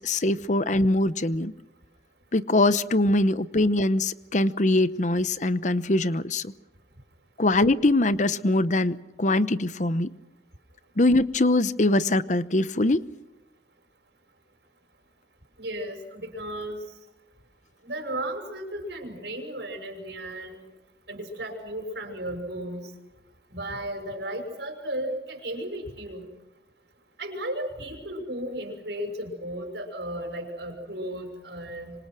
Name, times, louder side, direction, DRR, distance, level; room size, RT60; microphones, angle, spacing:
voice 1, 0.0-1.5 2.3-6.5 7.4-10.1 11.0-13.0, left 2 dB, 40° left, 15 dB, 0.9 m, -23 dB
voice 2, 15.6-16.8 17.8-20.6 21.1-22.9 23.5-26.3 27.2-31.9, right 1 dB, 70° right, 4 dB, 6.4 m, -34 dB
26.0 x 26.0 x 6.3 m, 0.99 s
head